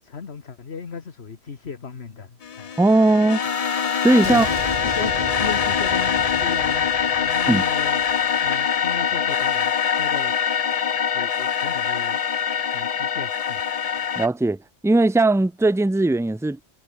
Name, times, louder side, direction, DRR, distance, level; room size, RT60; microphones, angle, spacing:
voice 1, 0.0-2.7 4.2-4.5 4.8-6.9 7.2-8.0 8.4-10.3 11.1-12.2 12.7-13.6, left 5 dB, 65° left, 1.8 m, -35 dB
sound 1, 2.4-14.3, left 7 dB, 45° left, 0.6 m, -23 dB
voice 2, 2.8-3.4 4.0-4.5 7.5-7.6 14.2-14.6 14.8-16.6, right 2 dB, 5° right, 0.3 m, -18 dB
sound 2, 3.4-9.1, right 2 dB, 40° right, 2.9 m, -35 dB
omnidirectional pair, 1.2 m